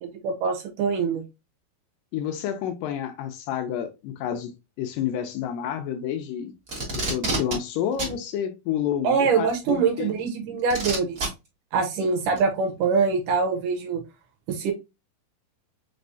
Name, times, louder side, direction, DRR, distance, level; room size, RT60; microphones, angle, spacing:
voice 1, 0.0-1.2 9.0-11.3 11.7-14.0 14.5-14.7, right 5 dB, 75° right, 2.1 m, -24 dB
voice 2, 2.1-4.5 4.8-6.5 6.9-10.2, left 9 dB, 80° left, 2.2 m, -29 dB
Packing tape duct tape, 6.7-7.6 8.0-8.1 9.5-9.6 10.7-11.3 12.4-12.5, right 2 dB, 40° right, 1.3 m, -27 dB
5.3 x 3.2 x 2.6 m
omnidirectional pair, 4.1 m